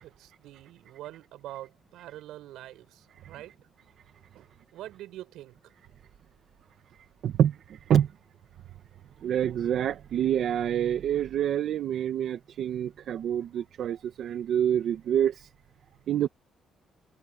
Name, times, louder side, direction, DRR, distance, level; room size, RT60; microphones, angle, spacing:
voice 1, 0.0-3.6 4.3-5.6, right 14 dB, 90° right, 7.8 m, -45 dB
voice 2, 7.2-8.1 9.2-15.5 16.1-16.3, right 10 dB, 70° right, 1.8 m, -27 dB
cardioid pair, 90°, 0 cm